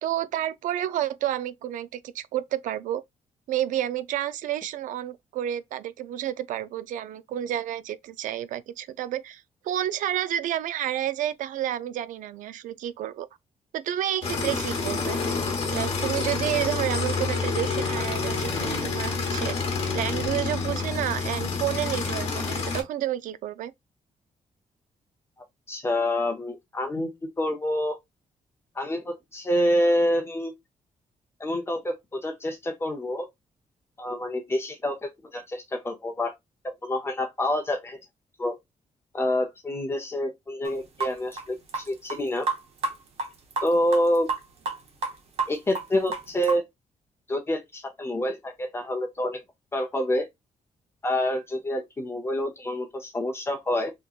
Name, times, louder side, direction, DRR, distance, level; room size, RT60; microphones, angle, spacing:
voice 1, 0.0-3.0 3.5-13.3 13.7-15.2 15.7-19.6 19.9-23.7, right 12 dB, 90° right, 0.4 m, -30 dB
sound 1, 14.2-22.8, left 4 dB, 50° left, 1.1 m, -28 dB
voice 2, 25.7-27.1 27.4-28.0 28.8-30.5 31.4-33.3 34.0-36.3 36.6-38.0 38.4-38.5 39.1-42.5 43.6-44.3 45.5-46.6 47.3-49.4 49.7-50.3 51.0-53.9, left 1 dB, 20° left, 0.6 m, -27 dB
sound 2, 40.6-40.7 41.0-42.2 42.5-42.9 43.2-44.8 45.0-46.6, right 4 dB, 55° right, 0.8 m, -29 dB
3.6 x 2.9 x 2.4 m
wide cardioid pair, 175°, 13 cm